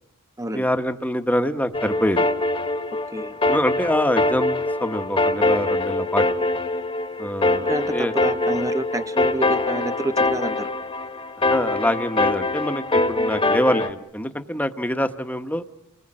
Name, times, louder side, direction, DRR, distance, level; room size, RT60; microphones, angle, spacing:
voice 1, 0.5-2.3 3.5-6.3 7.2-8.1 11.5-15.6, equal, 5° left, 8 dB, 1.0 m, -25 dB
sound 1, 1.7-13.9, left 2 dB, 25° left, 1.3 m, -23 dB
voice 2, 3.1-3.4 7.7-10.7, right 2 dB, 15° right, 10 dB, 0.9 m, -29 dB
29.0 x 20.0 x 8.8 m, 0.86 s
head